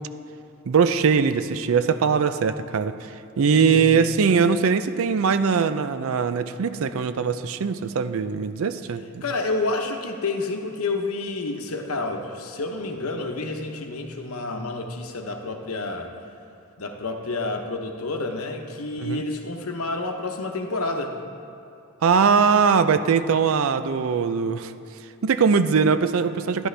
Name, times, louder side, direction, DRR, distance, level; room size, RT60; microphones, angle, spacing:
voice 1, 0.7-2.9 3.4-9.2 19.0-19.2 22.0-24.7 25.2-26.7, right 5 dB, 65° right, 11 dB, 0.4 m, -21 dB
voice 2, 3.5-4.1 9.2-16.1 16.8-21.2, left 2 dB, 75° left, 4 dB, 0.9 m, -29 dB
12.5 x 11.0 x 3.3 m, 2.7 s
head